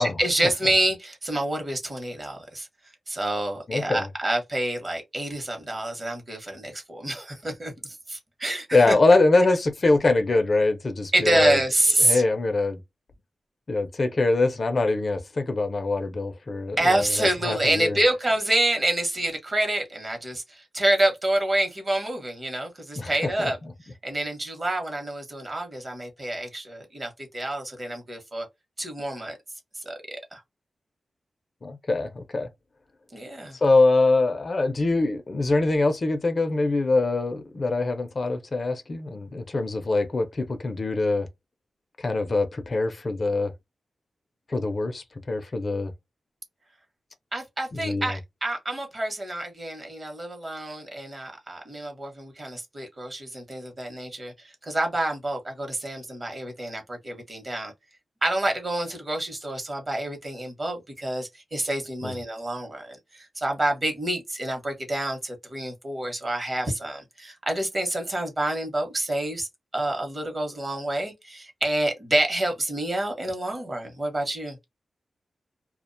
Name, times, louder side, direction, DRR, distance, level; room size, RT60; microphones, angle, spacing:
voice 1, 0.0-2.7 3.1-8.9 11.1-12.2 16.8-23.6 24.0-28.5 28.8-29.4 29.8-30.4 33.1-33.6 47.3-57.7 58.2-69.5 69.7-74.6, right 1 dB, 30° right, 0.8 m, -27 dB
voice 2, 3.7-4.1 8.7-11.6 12.0-12.8 13.7-18.0 23.0-23.1 23.4-23.5 31.6-32.5 33.5-41.3 42.0-43.5 44.5-45.9 47.7-48.1 62.0-62.2, left 2 dB, 45° left, 0.4 m, -23 dB
2.3 x 2.1 x 2.5 m
wide cardioid pair, 115°, 0 cm